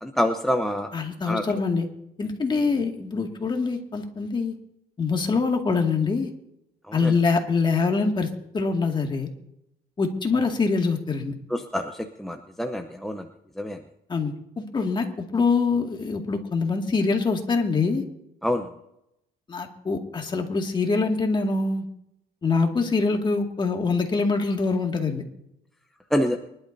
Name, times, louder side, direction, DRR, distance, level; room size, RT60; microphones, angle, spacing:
voice 1, 0.0-0.9 1.3-1.4 6.9-7.2 11.5-13.3 13.6-13.8 18.4-18.7 26.1-26.4, left 1 dB, ahead, 4 dB, 0.8 m, -26 dB
voice 2, 0.9-1.9 2.2-4.5 5.0-6.3 6.9-8.3 8.5-9.3 10.0-11.3 14.1-18.0 19.5-21.8 22.4-25.2, left 4 dB, 25° left, 3 dB, 2.1 m, -24 dB
24.0 x 12.0 x 2.7 m, 0.81 s
cardioid pair, 110°, 17 cm